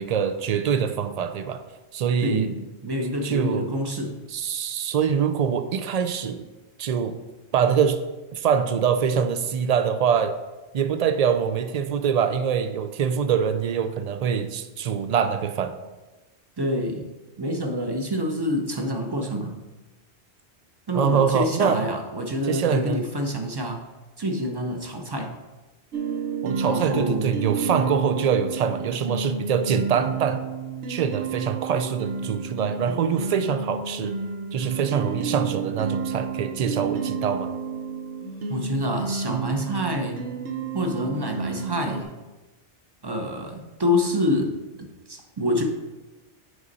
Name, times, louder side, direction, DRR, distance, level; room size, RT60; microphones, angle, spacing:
voice 1, 0.0-1.6 1.9-2.5 3.2-3.7 4.3-6.4 6.8-7.2 7.5-8.0 8.3-10.3 10.7-15.7 20.9-21.8 22.4-23.0 26.4-30.4 30.9-34.1 34.5-37.5, right 7 dB, 65° right, 10 dB, 0.4 m, -24 dB
voice 2, 2.2-4.2 16.6-17.1 17.4-19.5 20.9-23.8 24.2-25.3 26.7-27.3 38.5-40.2 40.7-42.1 43.0-45.6, left 1 dB, 25° right, 3 dB, 0.7 m, -27 dB
sound 1, 25.9-42.0, right 5 dB, 80° right, 1.1 m, -31 dB
sound 2, 35.1-35.7 38.2-39.2 40.8-41.8, right 1 dB, 45° left, 0.8 m, -40 dB
8.0 x 5.3 x 4.0 m, 1.2 s
omnidirectional pair, 1.2 m